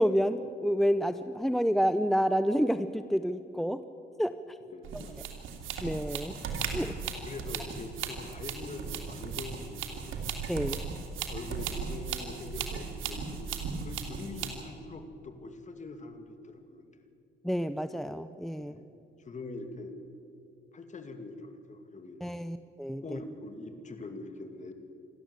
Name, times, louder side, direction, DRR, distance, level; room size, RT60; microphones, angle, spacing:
voice 1, 0.0-3.8 4.2-4.3 5.8-6.3 6.7-6.9 10.5-10.8 17.4-18.8 22.2-23.2, equal, ahead, 11 dB, 0.6 m, -29 dB
voice 2, 4.7-5.3 7.3-10.2 11.3-16.9 18.6-18.8 19.2-20.0 20.7-22.2 23.0-24.7, left 2 dB, 35° left, 7 dB, 2.4 m, -43 dB
sound 1, 4.8-14.6, right 6 dB, 80° right, 2.7 m, -37 dB
27.5 x 12.0 x 8.3 m, 2.5 s
cardioid pair, 90°, 20 cm